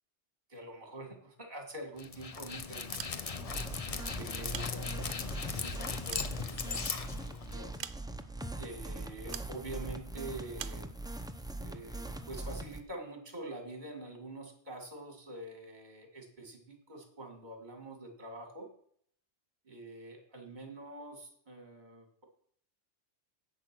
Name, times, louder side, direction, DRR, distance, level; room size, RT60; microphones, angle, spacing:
voice 1, 0.5-3.6 4.2-7.7 8.5-10.9 11.6-18.7 19.6-22.2, right 2 dB, 40° right, 4 dB, 2.3 m, -46 dB
Dog, 2.0-7.8, left 5 dB, 40° left, 0.7 m, -38 dB
sound 1, 2.9-3.6 4.3-5.3 5.8-7.0 7.8-8.4 9.3-9.6 10.6-10.9, right 9 dB, 70° right, 0.9 m, -45 dB
sound 2, 3.4-12.8, right 2 dB, 5° right, 0.5 m, -42 dB
10.5 x 7.8 x 6.0 m, 0.64 s
omnidirectional pair, 1.2 m